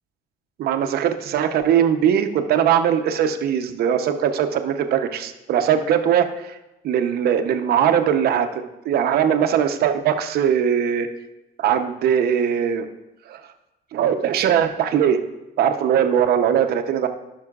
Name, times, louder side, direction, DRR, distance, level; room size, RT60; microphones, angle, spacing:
voice 1, 0.6-6.6 6.8-8.5 8.8-11.1 11.6-12.9 13.3-13.4 13.9-15.2 15.6-17.1, right 8 dB, 65° right, 7 dB, 0.8 m, -20 dB
17.0 x 5.7 x 2.4 m, 0.98 s
cardioid pair, 110°, 17 cm